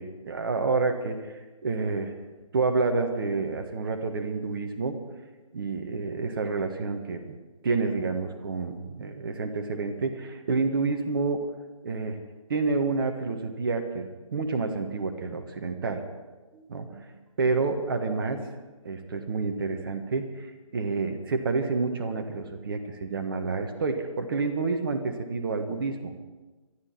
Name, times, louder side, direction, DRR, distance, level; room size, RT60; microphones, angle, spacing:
voice 1, 0.0-2.1 2.5-5.0 5.5-7.2 7.6-11.5 11.8-12.2 12.5-16.0 16.5-17.1 17.4-18.4 18.8-26.1, right 4 dB, 40° right, 6 dB, 1.5 m, -29 dB
24.5 x 11.5 x 4.5 m, 1.2 s
figure-of-eight pair, 145°, 18 cm